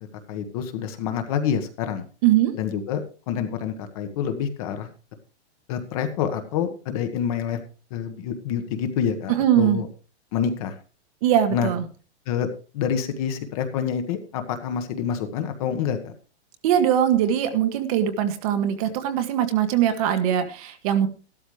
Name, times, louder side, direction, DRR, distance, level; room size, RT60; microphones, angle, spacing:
voice 1, 0.3-2.0 2.5-4.9 5.7-7.6 7.9-9.9 10.3-10.7 11.5-11.7 12.3-12.5 12.7-16.1, left 8 dB, 30° left, 8 dB, 1.5 m, -27 dB
voice 2, 2.2-2.5 9.3-9.8 11.2-11.8 16.6-21.1, right 10 dB, 30° right, 8 dB, 1.4 m, -21 dB
13.5 x 12.5 x 3.3 m, 0.36 s
hypercardioid pair, 165°, 34 cm